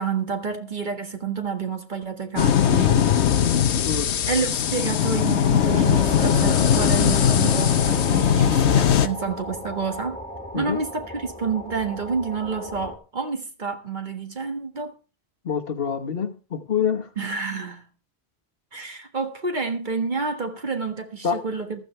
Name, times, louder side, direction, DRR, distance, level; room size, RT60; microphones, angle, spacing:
voice 1, 0.0-3.0 4.3-10.2 10.5-14.9 17.2-17.9 18.7-21.8, right 5 dB, 45° right, 1.7 m, -29 dB
sound 1, 2.4-9.1, left 9 dB, 80° left, 1.1 m, -20 dB
sound 2, 5.6-13.0, equal, 5° left, 2.0 m, -34 dB
sound 3, 5.8-8.0, right 5 dB, 85° right, 1.2 m, -40 dB
voice 2, 15.4-17.1 21.2-21.4, left 7 dB, 60° left, 1.4 m, -26 dB
14.5 x 13.0 x 3.2 m
omnidirectional pair, 1.1 m